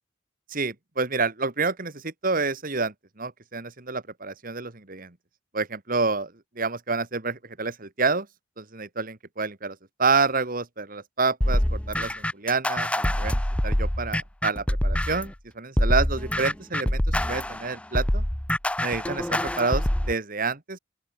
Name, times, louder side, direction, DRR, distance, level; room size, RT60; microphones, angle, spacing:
voice 1, 0.5-5.1 5.5-6.3 6.6-8.3 8.6-18.2 18.8-20.8, right 4 dB, 45° right, 1.9 m, -28 dB
sound 1, 11.4-15.3 15.8-20.1, left 1 dB, 5° left, 0.6 m, -25 dB
open air
head